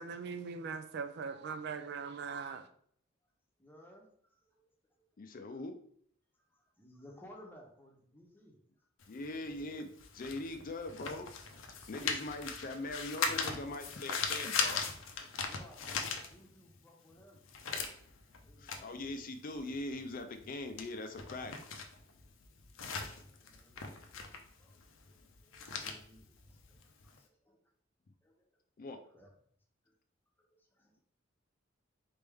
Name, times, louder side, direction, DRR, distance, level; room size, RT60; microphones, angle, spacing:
voice 1, 0.0-2.7, right 5 dB, 60° right, 0.4 m, -40 dB
voice 2, 3.6-4.6 4.9-5.0 5.5-5.6 6.3-8.9 15.4-17.5 18.3-19.3 23.1-23.8 24.2-27.6 28.2-28.5 28.8-29.3 29.8-29.9 30.4-31.0, equal, 10° left, 0.8 m, -59 dB
voice 3, 5.2-5.8 9.1-11.3 11.9-14.8 18.6-21.5 28.8-29.0, left 2 dB, 45° left, 0.4 m, -41 dB
sound 1, 9.0-16.8 17.1-27.2, left 5 dB, 90° left, 0.6 m, -39 dB
4.2 x 3.4 x 3.4 m
head